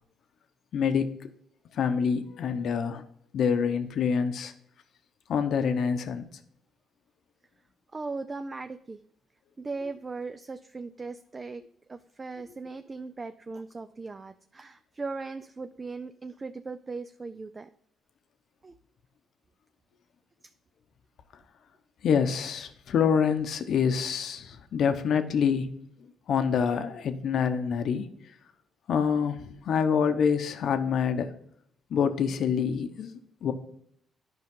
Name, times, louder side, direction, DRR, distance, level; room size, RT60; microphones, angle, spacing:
voice 1, 0.7-1.1 1.7-3.0 3.3-4.5 5.3-6.3 22.0-25.7 26.0-28.1 28.9-31.3 31.9-33.5, left 7 dB, 65° left, 8 dB, 0.8 m, -26 dB
voice 2, 7.9-9.0 9.6-11.6 11.9-17.7 18.6-18.8 20.4-20.5, right 3 dB, 30° right, 10 dB, 0.4 m, -38 dB
11.0 x 5.1 x 3.7 m, 0.70 s
cardioid pair, 90°, 0 cm